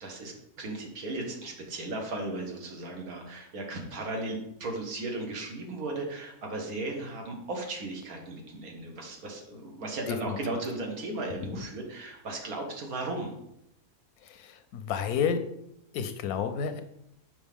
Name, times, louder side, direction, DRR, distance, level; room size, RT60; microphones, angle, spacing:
voice 1, 0.0-13.3, right 2 dB, 80° right, 1 dB, 1.7 m, -36 dB
voice 2, 14.2-15.4 15.9-16.8, left 7 dB, 90° left, 9 dB, 1.1 m, -31 dB
6.2 x 5.1 x 3.5 m, 0.78 s
omnidirectional pair, 1.5 m